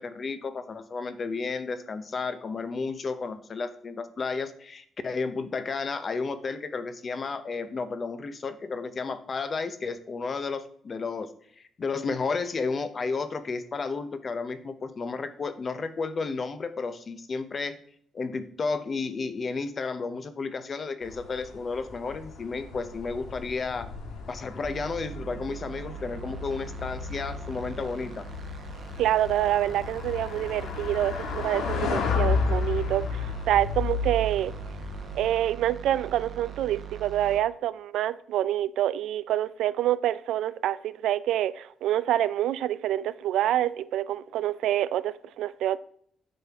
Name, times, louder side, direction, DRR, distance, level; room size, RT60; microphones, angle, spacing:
voice 1, 0.0-11.3 11.6-17.8 18.1-23.9 24.3-28.3, left 4 dB, 40° left, 0.7 m, -32 dB
sound 1, 21.0-35.3, left 5 dB, 85° left, 1.4 m, -33 dB
sound 2, 24.6-37.4, right 9 dB, 45° right, 0.9 m, -42 dB
voice 2, 29.0-34.5 35.1-45.8, right 12 dB, 85° right, 0.3 m, -27 dB
9.1 x 5.9 x 3.5 m
cardioid pair, 115°, 0 cm